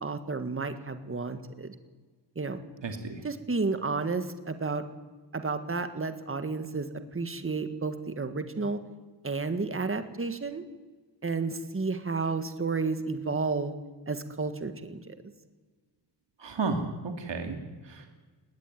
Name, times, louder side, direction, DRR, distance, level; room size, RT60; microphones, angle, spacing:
voice 1, 0.0-1.8 2.4-2.6 3.2-4.8 5.3-8.8 9.2-10.6 11.2-13.7 14.1-15.2, right 4 dB, 30° right, 9 dB, 1.7 m, -31 dB
voice 2, 2.8-3.2 16.4-17.6 17.8-18.2, right 4 dB, 70° right, 5 dB, 2.6 m, -33 dB
20.0 x 17.0 x 9.4 m, 1.4 s
wide cardioid pair, 140°, 44 cm